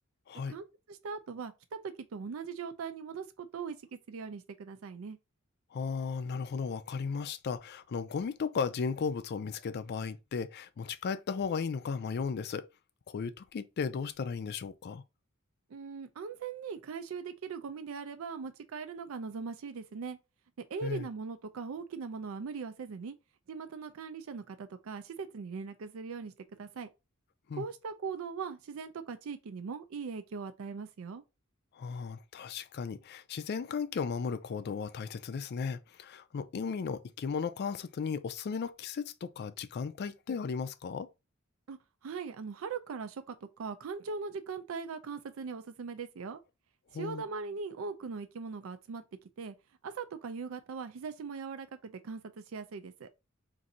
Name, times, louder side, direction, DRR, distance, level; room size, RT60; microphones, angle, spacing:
voice 1, 0.5-3.8 4.1-5.2 15.7-20.2 20.7-23.2 23.5-26.9 27.5-31.2 41.7-46.4 46.9-49.5 49.8-53.1, right 5 dB, 70° right, 0.4 m, -40 dB
voice 2, 5.7-12.7 13.1-15.0 20.8-21.1 27.5-27.6 31.7-41.1 46.9-47.2, left 5 dB, 50° left, 0.4 m, -35 dB
2.6 x 2.5 x 4.1 m
head